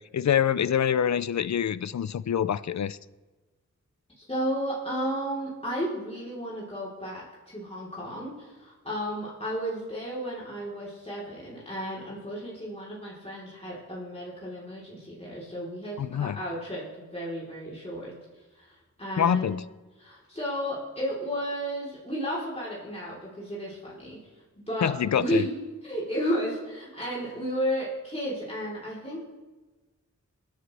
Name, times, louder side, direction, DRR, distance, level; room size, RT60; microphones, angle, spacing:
voice 1, 0.0-3.0 16.0-16.4 19.2-19.6 24.8-25.5, left 9 dB, 65° left, 0.5 m, -26 dB
voice 2, 4.2-18.1 18.5-19.6 20.0-24.2 24.6-29.2, equal, 20° left, 3.7 m, -33 dB
27.5 x 10.0 x 3.4 m
wide cardioid pair, 70°, 30 cm